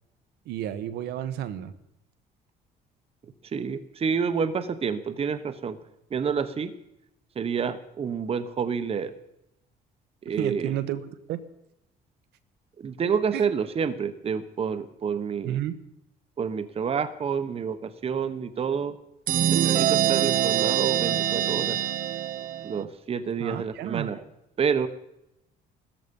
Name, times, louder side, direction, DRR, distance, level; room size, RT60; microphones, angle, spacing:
voice 1, 0.5-1.7 10.3-11.4 13.3-13.4 15.4-15.8 23.4-24.1, right 11 dB, 80° right, 11 dB, 1.2 m, -31 dB
voice 2, 3.5-5.8 6.1-6.7 7.4-9.1 10.2-10.7 12.8-15.6 16.4-18.9 19.5-21.8 22.6-24.2 24.6-24.9, right 6 dB, 35° right, 11 dB, 1.1 m, -28 dB
sound 1, 19.3-22.8, right 11 dB, 55° right, 0.9 m, -24 dB
16.5 x 14.0 x 5.4 m, 0.85 s
cardioid pair, 110°, 17 cm